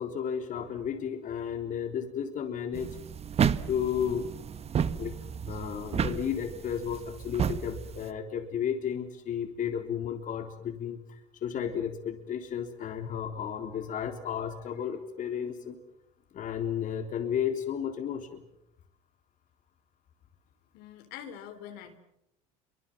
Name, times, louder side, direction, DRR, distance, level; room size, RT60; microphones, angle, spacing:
voice 1, 0.0-3.0 3.7-4.3 5.0-15.8 16.3-18.4, left 8 dB, 50° left, 5 dB, 3.7 m, -33 dB
sound 1, 2.7-8.1, right 7 dB, 40° right, 1.4 m, -32 dB
voice 2, 20.7-22.0, left 9 dB, 75° left, 6 dB, 4.0 m, -44 dB
28.0 x 24.5 x 7.6 m, 0.80 s
supercardioid pair, 80°, 17 cm